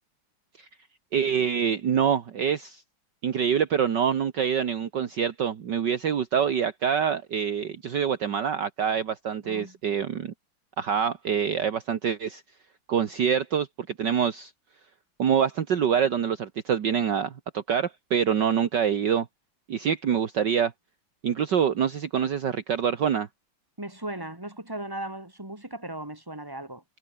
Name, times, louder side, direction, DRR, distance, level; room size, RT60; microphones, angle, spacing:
voice 1, 1.1-2.8 3.2-10.3 10.8-12.4 12.9-13.7 14.0-14.5 15.2-19.3 19.7-20.7 21.2-23.3, right 8 dB, 55° right, 1.9 m, -25 dB
voice 2, 9.4-9.8 23.8-26.8, right 1 dB, 10° right, 4.1 m, -37 dB
omnidirectional pair, 2.4 m